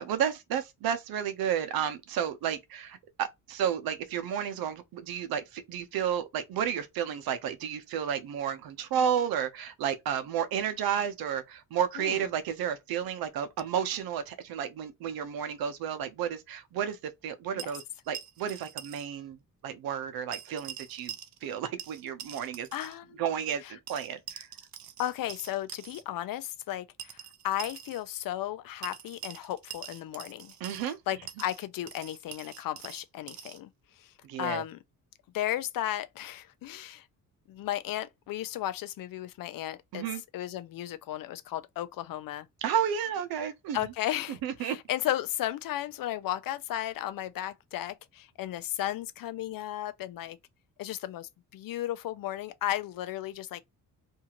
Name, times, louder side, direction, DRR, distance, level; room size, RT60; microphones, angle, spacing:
voice 1, 0.0-19.4 19.6-21.1 21.4-22.7 23.2-24.5 30.6-31.0 34.2-34.6 39.9-40.2 42.6-43.8 44.3-44.8, right 8 dB, 85° right, 0.7 m, -32 dB
sound 1, 17.6-19.1 19.3-19.4 20.3-21.5 21.8-23.0 23.9-26.0 27.0-28.0 28.8-31.0 31.3-33.6, right 9 dB, 55° right, 0.5 m, -44 dB
voice 2, 22.7-23.2 23.6-23.7 25.0-30.5 31.1-33.7 34.0-34.8 35.3-37.1 37.5-40.0 40.3-42.5 43.7-50.4 50.8-53.6, left 13 dB, 70° left, 0.5 m, -34 dB
2.7 x 2.4 x 2.9 m
cardioid pair, 110°, 35 cm